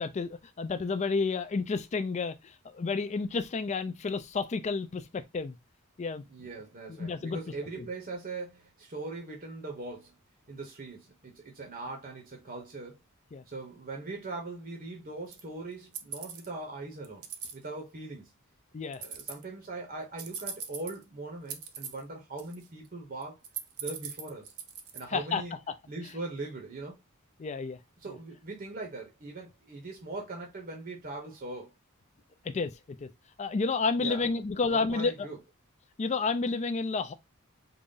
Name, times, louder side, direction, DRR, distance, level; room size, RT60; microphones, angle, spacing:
voice 1, 0.0-5.6 6.0-6.2 6.9-7.4 7.8-7.9 13.3-13.4 18.7-19.0 25.1-25.7 27.4-27.8 32.4-33.1 33.4-35.1 36.0-37.1, left 4 dB, 30° left, 0.4 m, -31 dB
voice 2, 6.2-10.1 10.5-13.0 13.5-17.3 17.5-18.3 19.0-23.4 23.8-24.5 24.9-25.5 25.9-27.0 28.0-31.7 34.0-34.2 34.6-35.4, right 2 dB, 40° right, 0.8 m, -40 dB
sound 1, 15.3-15.4 15.9-16.5 17.0-17.5 18.9-19.4 20.2-21.0 21.5-22.0 22.4-22.9 23.2-25.0, right 7 dB, 80° right, 0.6 m, -39 dB
3.9 x 2.0 x 3.6 m
head